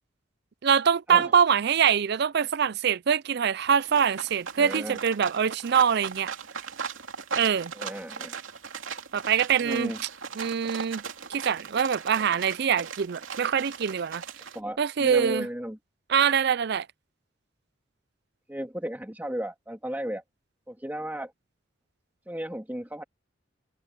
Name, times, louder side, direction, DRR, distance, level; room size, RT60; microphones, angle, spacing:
voice 1, 0.6-6.3 7.3-7.7 9.1-9.9 10.4-11.0 11.3-14.2 14.8-15.5 16.1-16.9, right 7 dB, 55° right, 0.5 m, -24 dB
sound 1, 3.8-14.6, right 6 dB, 85° right, 2.8 m, -38 dB
voice 2, 4.6-5.0 7.7-8.3 9.6-10.0 14.5-15.8 18.5-20.2 20.7-21.3 22.3-23.0, equal, 10° right, 2.6 m, -34 dB
head